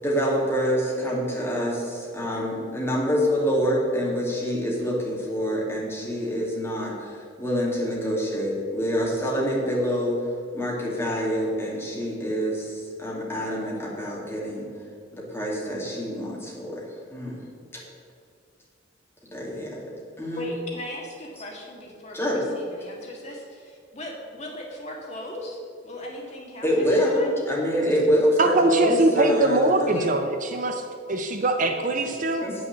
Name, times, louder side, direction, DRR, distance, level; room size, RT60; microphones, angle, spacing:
voice 1, 0.0-10.2 10.5-14.7 15.1-16.8 17.1-17.4 19.3-19.8 20.2-20.5 22.1-22.4 26.6-30.0 31.7-31.8 32.4-32.5, equal, 10° left, -4 dB, 2.4 m, -26 dB
voice 2, 20.3-27.3 29.9-30.1, left 1 dB, 35° left, -2 dB, 1.8 m, -38 dB
voice 3, 28.4-30.8 31.1-32.4, right 2 dB, 40° right, 6 dB, 0.6 m, -22 dB
9.1 x 6.3 x 7.3 m, 2.2 s
head